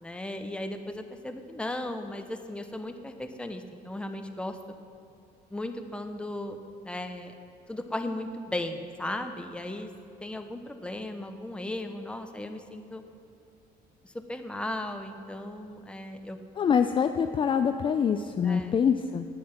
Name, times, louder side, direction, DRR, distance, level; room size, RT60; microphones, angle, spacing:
voice 1, 0.0-4.6 5.5-7.3 7.7-9.9 10.2-13.0 14.0-16.4 18.4-18.8, left 1 dB, 5° left, 6 dB, 0.8 m, -36 dB
voice 2, 16.6-19.3, left 7 dB, 30° left, 8 dB, 0.4 m, -25 dB
9.7 x 8.4 x 5.8 m, 2.5 s
cardioid pair, 110°, 17 cm